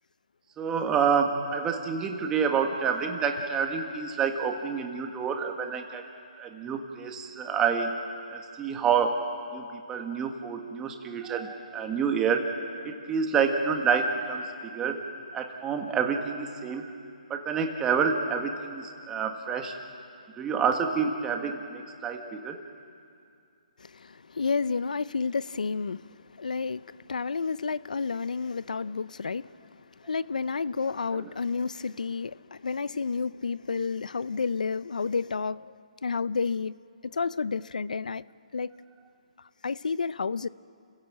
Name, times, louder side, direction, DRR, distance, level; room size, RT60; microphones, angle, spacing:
voice 1, 0.6-6.0 6.4-8.0 8.3-9.3 9.5-12.5 12.8-15.0 15.3-16.9 17.3-19.8 20.4-22.6 31.1-31.3, right 6 dB, 15° right, 1.7 m, -28 dB
voice 2, 24.0-26.0 26.4-29.5 30.1-35.6 36.0-36.7 37.0-38.2 38.5-38.7 39.6-40.5, left 5 dB, 85° left, 0.6 m, -30 dB
30.0 x 16.0 x 7.6 m
hypercardioid pair, 150°, 4 cm